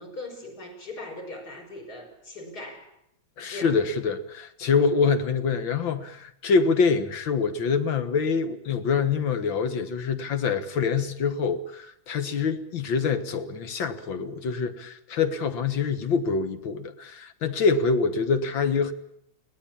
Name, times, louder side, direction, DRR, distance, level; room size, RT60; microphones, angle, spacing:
voice 1, 0.0-2.9 3.5-3.8, left 2 dB, 55° left, 6.0 m, -39 dB
voice 2, 3.4-18.9, left 5 dB, 85° left, 2.2 m, -25 dB
22.0 x 17.5 x 8.6 m
omnidirectional pair, 2.1 m